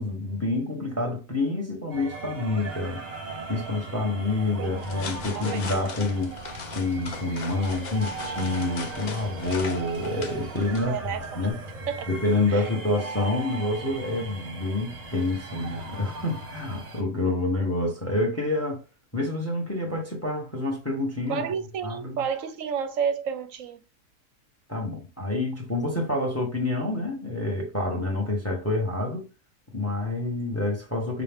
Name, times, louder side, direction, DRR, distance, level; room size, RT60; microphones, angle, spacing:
voice 1, 0.0-3.0 3.5-6.3 6.7-11.0 11.3-11.6 12.1-18.8 19.1-21.4 21.8-22.2 24.7-29.2 29.7-31.2, left 2 dB, 10° left, 0.9 m, -28 dB
sound 1, 1.9-17.0, right 3 dB, 35° right, 0.8 m, -38 dB
sound 2, 4.6-11.5, left 4 dB, 60° left, 0.4 m, -39 dB
voice 2, 5.3-5.7 10.8-11.5 11.9-12.1 12.5-12.7 21.3-23.8, right 7 dB, 70° right, 0.9 m, -31 dB
5.9 x 2.4 x 3.6 m
omnidirectional pair, 1.6 m